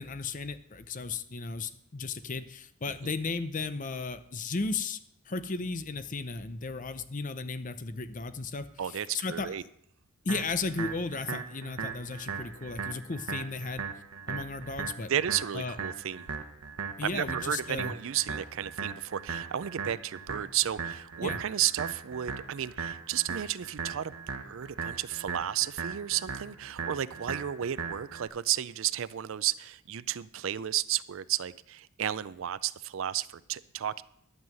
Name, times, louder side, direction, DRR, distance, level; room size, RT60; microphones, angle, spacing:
voice 1, 0.0-5.0 5.3-9.6 10.2-13.8 14.3-15.1 15.5-15.8 17.0-17.9 21.2-21.4, left 4 dB, 35° left, 12 dB, 0.6 m, -35 dB
voice 2, 8.8-9.6 15.1-16.3 17.0-24.1 24.4-34.0, right 11 dB, 60° right, 16 dB, 0.4 m, -33 dB
sound 1, 10.3-28.3, right 5 dB, 80° right, 1.0 m, -38 dB
12.0 x 5.6 x 7.7 m, 0.73 s
head